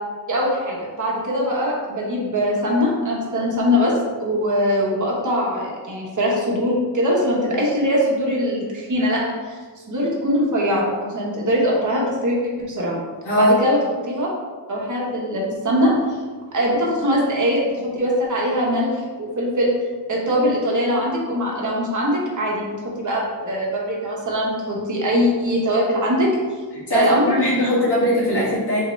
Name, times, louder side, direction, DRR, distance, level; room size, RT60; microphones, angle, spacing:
voice 1, 0.3-3.9 4.2-9.6 9.9-12.4 12.7-13.0 13.4-13.8 14.0-14.3 14.7-16.2 16.5-19.7 20.1-26.3 26.9-27.4, equal, 45° right, -4 dB, 1.0 m, -22 dB
voice 2, 26.7-28.8, left 1 dB, 65° left, -6 dB, 1.4 m, -20 dB
3.6 x 2.8 x 3.1 m, 1.4 s
cardioid pair, 75°, 44 cm